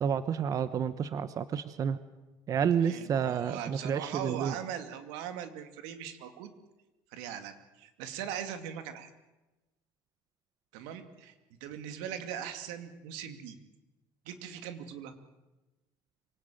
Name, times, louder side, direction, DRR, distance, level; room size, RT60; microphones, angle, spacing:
voice 1, 0.0-2.0 2.5-4.5, right 7 dB, 40° right, 13 dB, 1.1 m, -30 dB
voice 2, 2.8-6.5 7.1-9.1 10.7-11.3 11.6-13.6 14.3-15.1, right 9 dB, 90° right, 8 dB, 2.5 m, -40 dB
25.0 x 18.0 x 9.1 m, 1.1 s
cardioid pair, 120°, 9 cm